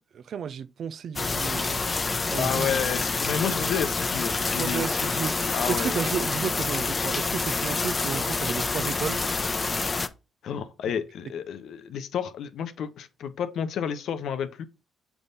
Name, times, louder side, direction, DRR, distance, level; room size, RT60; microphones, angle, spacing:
voice 1, 0.1-1.8 2.3-2.8 3.4-3.6 4.6-9.2, right 7 dB, 65° right, 0.4 m, -33 dB
sound 1, 1.2-10.1, left 3 dB, 35° left, 0.6 m, -27 dB
voice 2, 2.4-4.9 5.5-6.0 10.4-14.7, left 8 dB, 75° left, 0.7 m, -30 dB
7.0 x 3.5 x 4.0 m
supercardioid pair, 60°, 0 cm